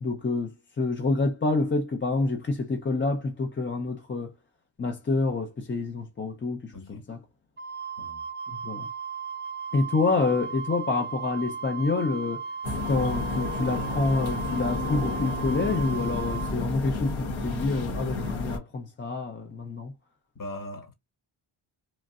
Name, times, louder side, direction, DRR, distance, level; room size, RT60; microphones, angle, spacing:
voice 1, 0.0-4.4 4.8-7.2 8.5-8.9 9.7-12.4 12.9-19.9, left 3 dB, 25° left, 0.6 m, -28 dB
voice 2, 6.7-7.1 8.0-8.2 20.3-20.9, left 1 dB, 40° left, 1.3 m, -40 dB
Wind instrument woodwind instrument, 7.6-16.5, right 5 dB, 25° right, 0.4 m, -36 dB
sound 1, 12.6-18.6, left 3 dB, 70° left, 1.3 m, -31 dB
3.1 x 2.5 x 2.3 m
cardioid pair, 70°, 48 cm